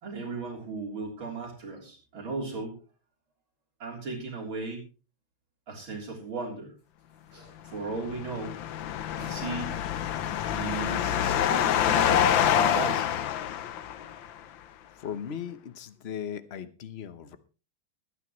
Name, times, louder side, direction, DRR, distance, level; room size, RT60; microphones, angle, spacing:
voice 1, 0.0-2.8 3.8-4.8 5.7-6.7 7.6-8.6 9.2-9.7 10.5-13.2, right 3 dB, 65° right, -1 dB, 4.4 m, -36 dB
sound 1, 6.8-7.7 8.1-8.2 8.6-8.8 9.2-13.0 13.6-13.7, equal, 50° right, 7.8 m, -59 dB
sound 2, 7.9-14.3, left 9 dB, 70° left, 1.5 m, -26 dB
voice 2, 14.6-17.4, left 8 dB, 50° left, 12 dB, 0.8 m, -38 dB
22.0 x 9.4 x 3.1 m, 0.34 s
omnidirectional pair, 2.3 m